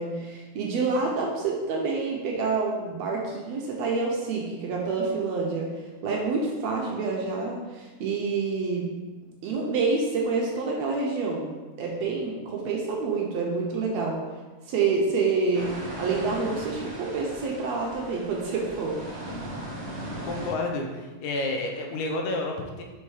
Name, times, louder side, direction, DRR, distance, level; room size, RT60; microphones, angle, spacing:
voice 1, 0.0-8.9 9.4-11.5 11.8-14.2 14.7-15.7 16.0-19.1, right 4 dB, 75° right, -1 dB, 1.8 m, -27 dB
sound 1, 15.5-20.5, right 1 dB, 20° right, 1.2 m, -38 dB
voice 2, 20.3-22.8, left 2 dB, 80° left, 2 dB, 2.3 m, -30 dB
5.5 x 4.3 x 4.8 m, 1.3 s
omnidirectional pair, 3.5 m